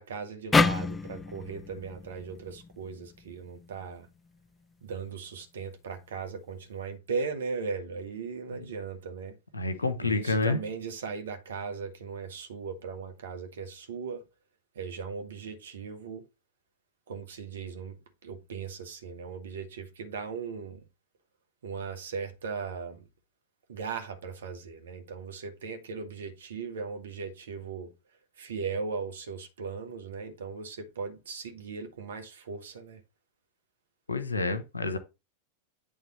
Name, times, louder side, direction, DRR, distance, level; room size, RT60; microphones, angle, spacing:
voice 1, 0.0-4.1 4.8-9.4 10.0-14.2 14.7-16.2 17.1-18.0 18.2-20.8 21.6-23.0 23.7-27.9 28.4-33.0, right 5 dB, 65° right, 1.3 m, -38 dB
sound 1, 0.5-3.8, left 4 dB, 15° left, 0.3 m, -29 dB
voice 2, 9.5-10.6 34.1-35.0, left 3 dB, 80° left, 0.9 m, -28 dB
8.9 x 3.4 x 4.3 m
figure-of-eight pair, 90°, 0 cm